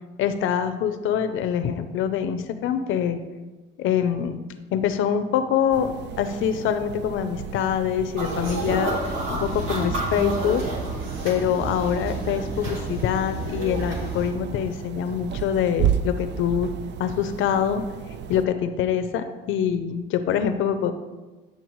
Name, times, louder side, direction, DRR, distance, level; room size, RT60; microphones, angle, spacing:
voice 1, 0.2-3.2 3.8-4.4 4.7-8.9 9.3-10.6 11.2-16.7 17.0-17.8 18.3-20.9, left 8 dB, 85° left, 9 dB, 0.5 m, -25 dB
sound 1, 5.7-18.5, right 9 dB, 60° right, 0.4 m, -33 dB
sound 2, 8.2-14.3, right 2 dB, 85° right, 1.8 m, -30 dB
9.4 x 6.7 x 3.1 m, 1.2 s
cardioid pair, 90°, 20 cm